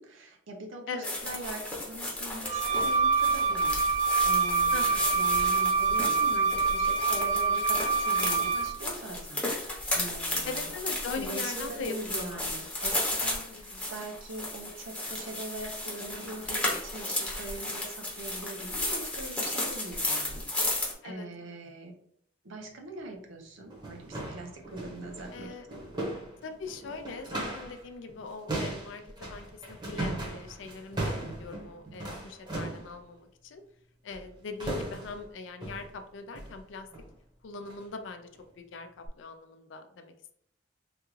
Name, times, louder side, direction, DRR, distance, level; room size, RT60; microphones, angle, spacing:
voice 1, 0.0-3.8 4.2-10.7 11.2-21.9 22.4-25.8, right 2 dB, 85° right, 2 dB, 0.7 m, -42 dB
sound 1, 1.0-20.9, left 1 dB, 5° left, 0.7 m, -34 dB
Wind instrument woodwind instrument, 2.4-8.8, right 4 dB, 40° right, 0.4 m, -26 dB
voice 2, 4.7-5.1 10.5-12.5 13.5-13.9 21.0-21.6 25.3-25.7 26.4-29.0 29.3-33.6 34.0-36.9 37.4-38.3 38.6-40.3, left 4 dB, 70° left, 6 dB, 0.4 m, -41 dB
sound 2, 23.0-23.1 23.6-27.8 28.1-32.9 34.1-34.3 34.6-35.2 35.6-35.9 36.3-36.6 36.9-37.1 37.6-37.8 38.3-38.4 39.1-39.2, right 2 dB, 25° right, 0.8 m, -37 dB
3.4 x 2.4 x 3.1 m, 0.69 s
head